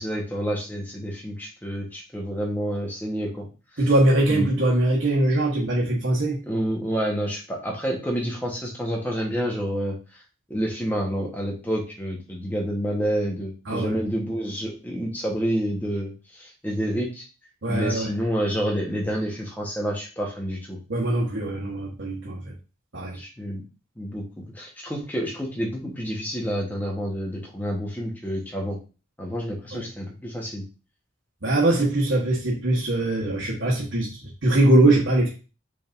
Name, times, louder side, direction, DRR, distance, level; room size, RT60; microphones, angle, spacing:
voice 1, 0.0-3.5 3.7-3.8 4.3-4.5 6.5-10.2 10.5-17.2 17.7-20.8 23.1-23.6 24.0-28.8 29.2-30.6, equal, 10° left, -2 dB, 1.0 m, -29 dB
voice 2, 3.8-6.4 13.7-14.0 17.6-18.1 20.9-22.5 22.9-23.2 29.7-29.9 31.4-35.3, right 1 dB, 70° right, -4 dB, 1.1 m, -22 dB
5.1 x 3.4 x 2.5 m, 0.33 s
head